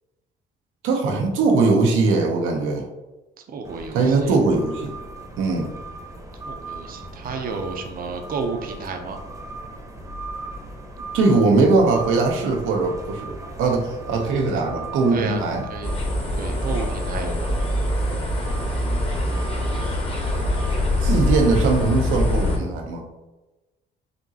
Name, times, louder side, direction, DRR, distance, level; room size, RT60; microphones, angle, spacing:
voice 1, 0.8-2.9 3.9-4.9 5.4-5.7 11.1-15.7 21.0-23.1, right 3 dB, 90° right, 1 dB, 0.6 m, -20 dB
voice 2, 3.5-4.4 6.4-9.2 15.1-15.4 15.7-15.9 16.4-17.5, right 4 dB, 45° right, 4 dB, 0.5 m, -31 dB
sound 1, 3.6-22.5, right 2 dB, 15° right, 0.8 m, -38 dB
sound 2, 15.8-22.6, left 1 dB, 30° left, 1.0 m, -23 dB
5.1 x 2.9 x 2.7 m, 1.1 s
cardioid pair, 90°, 20 cm